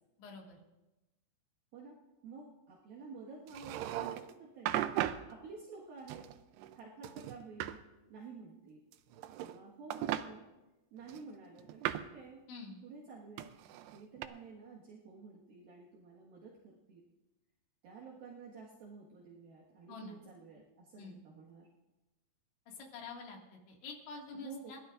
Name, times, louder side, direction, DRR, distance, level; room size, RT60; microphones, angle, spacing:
voice 1, 0.2-0.6 12.5-12.8 19.9-20.2 21.0-21.2 22.7-24.8, left 4 dB, 80° left, 0 dB, 4.5 m, -47 dB
voice 2, 1.7-4.8 5.3-6.3 6.7-7.8 8.1-8.8 9.4-10.5 10.9-12.4 12.8-13.5 13.9-17.1 17.8-21.7 24.3-24.7, right 4 dB, 60° right, -4 dB, 3.1 m, -51 dB
sound 1, 3.5-4.3 4.7-5.3 6.1-6.8 7.0-7.8 8.9-9.6 9.9-10.3 11.1-12.2 13.4-14.3, right 12 dB, 80° right, 2.5 m, -37 dB
29.0 x 12.5 x 2.5 m, 1.0 s
omnidirectional pair, 5.2 m